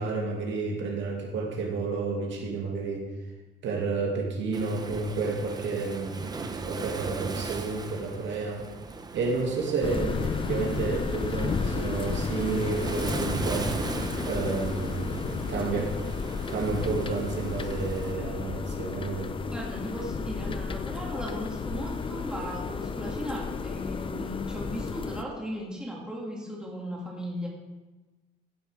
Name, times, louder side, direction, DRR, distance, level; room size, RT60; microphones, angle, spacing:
voice 1, 0.0-3.1 3.6-8.6 9.1-13.7 14.2-16.0 16.5-19.3, right 4 dB, 70° right, 0 dB, 2.4 m, -31 dB
Waves surf, 4.5-18.1, right 3 dB, 20° right, 0.7 m, -38 dB
sound 1, 9.8-25.2, left 5 dB, 25° left, 0.6 m, -33 dB
voice 2, 19.5-27.5, equal, 5° right, -3 dB, 2.7 m, -37 dB
15.5 x 7.7 x 4.9 m, 1.2 s
cardioid pair, 150°, 19 cm